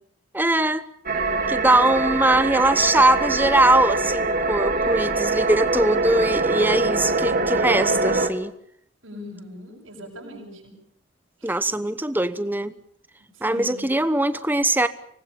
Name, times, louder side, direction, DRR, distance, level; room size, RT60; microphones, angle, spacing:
voice 1, 0.3-0.8 1.5-8.5 11.4-12.7 13.4-14.9, right 1 dB, 10° right, 1.0 m, -21 dB
sound 1, 1.1-8.3, right 3 dB, 45° right, 2.0 m, -23 dB
voice 2, 1.1-2.6 4.7-5.2 9.0-10.7 11.4-11.8 13.4-13.9, equal, 85° right, 7.4 m, -40 dB
25.0 x 19.0 x 7.1 m
head